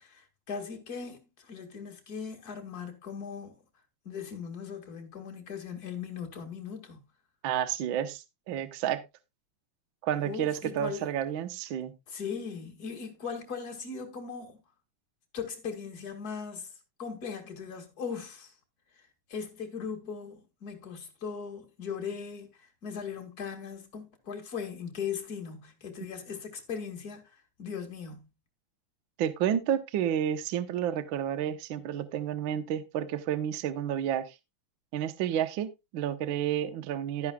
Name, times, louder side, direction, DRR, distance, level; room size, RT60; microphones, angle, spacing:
voice 1, 0.0-3.5 4.0-7.0 10.2-11.1 12.1-14.6 15.3-16.7 17.0-18.5 19.3-28.3, left 6 dB, 35° left, 2.2 m, -39 dB
voice 2, 7.4-9.0 10.0-12.0 29.2-34.3 34.9-37.3, right 10 dB, 80° right, 1.1 m, -30 dB
12.5 x 10.5 x 2.3 m
omnidirectional pair, 3.6 m